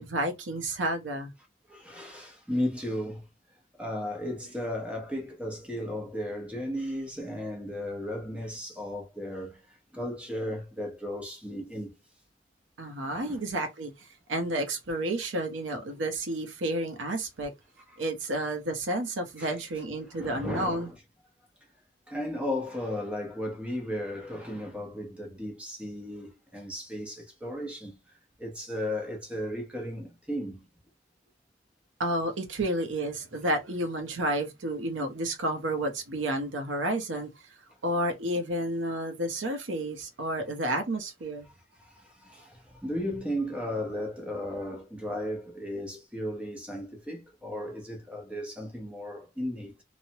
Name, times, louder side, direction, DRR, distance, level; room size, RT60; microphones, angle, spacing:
voice 1, 0.0-1.3 12.8-17.5 18.0-20.9 32.0-37.3 37.8-41.5, right 1 dB, 85° right, 0.7 m, -31 dB
voice 2, 1.7-3.3 3.7-11.9 13.1-13.4 17.9-18.0 19.4-19.5 20.1-21.0 22.1-30.7 41.8-49.8, left 1 dB, 5° right, 0.6 m, -35 dB
3.1 x 2.0 x 2.7 m
head